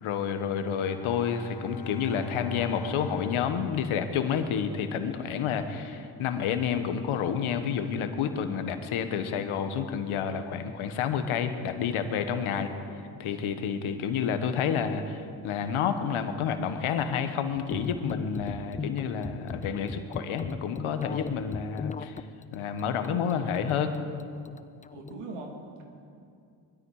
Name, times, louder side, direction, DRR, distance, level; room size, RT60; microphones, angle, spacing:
voice 1, 0.0-12.7 13.2-22.2 22.5-23.9, left 7 dB, 80° left, 8 dB, 1.5 m, -29 dB
Bowed string instrument, 0.7-5.1, left 3 dB, 45° left, 1.2 m, -42 dB
voice 2, 12.4-12.8 24.9-25.8, right 3 dB, 85° right, 1 dB, 2.7 m, -41 dB
sound 1, 17.6-25.2, left 5 dB, 20° left, 0.3 m, -38 dB
21.5 x 13.0 x 4.9 m, 2.4 s
supercardioid pair, 70°, 48 cm